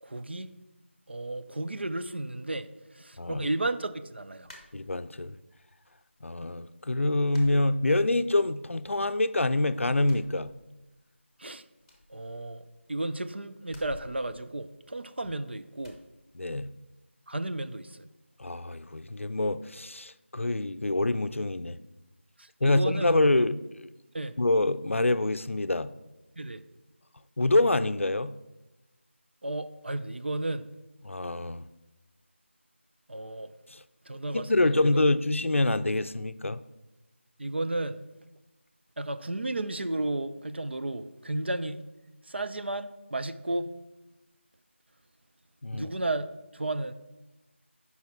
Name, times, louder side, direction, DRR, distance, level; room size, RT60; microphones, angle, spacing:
voice 1, 0.0-0.5 1.1-2.7 2.9-4.5 11.4-11.6 12.1-16.0 17.3-18.1 22.4-23.2 24.1-24.4 26.4-26.6 29.4-30.7 33.1-33.5 34.1-35.0 37.4-38.0 39.0-41.8 42.3-43.7 45.7-46.3 46.5-46.9, right 2 dB, 55° right, 0.5 m, -33 dB
sound 1, 4.4-5.3 5.7-6.4 6.7-6.8 7.3-8.4 8.7-9.5 9.9-11.1 11.4-11.5 11.8-13.0 13.6-15.3 15.8-16.1, left 1 dB, 25° left, 1.2 m, -52 dB
voice 2, 4.7-5.4 6.2-10.5 16.3-16.7 18.4-21.8 22.6-23.9 24.4-25.9 27.4-28.3 31.0-31.6 33.7-33.8 34.1-36.6 45.6-45.9, left 2 dB, 80° left, 0.5 m, -26 dB
7.8 x 5.6 x 4.5 m
figure-of-eight pair, 170°, 7 cm